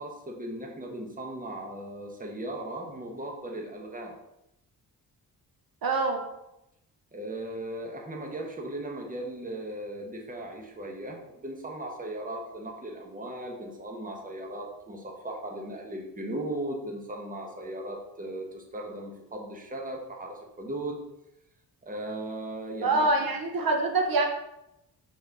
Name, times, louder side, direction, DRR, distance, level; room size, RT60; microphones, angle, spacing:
voice 1, 0.0-4.2 7.1-21.0 21.8-23.1, right 1 dB, 20° right, 1 dB, 1.1 m, -37 dB
voice 2, 5.8-6.2 22.8-24.2, right 3 dB, 60° right, 3 dB, 1.0 m, -25 dB
5.9 x 4.1 x 4.1 m, 0.86 s
cardioid pair, 95°, 39 cm